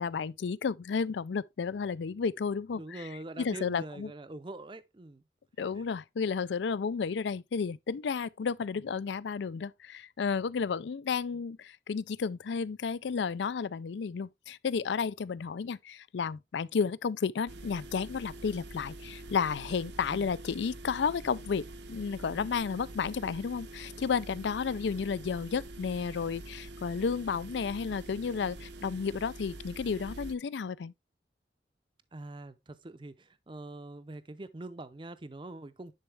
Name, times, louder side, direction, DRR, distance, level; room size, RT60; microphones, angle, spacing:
voice 1, 0.0-3.0 3.4-4.1 5.6-30.9, left 5 dB, 80° left, 0.4 m, -32 dB
voice 2, 2.7-5.2 5.7-5.8 20.1-20.3 32.1-35.9, right 2 dB, 25° right, 0.5 m, -44 dB
sound 1, 17.5-30.3, right 2 dB, 75° right, 0.7 m, -46 dB
10.0 x 4.3 x 3.3 m
head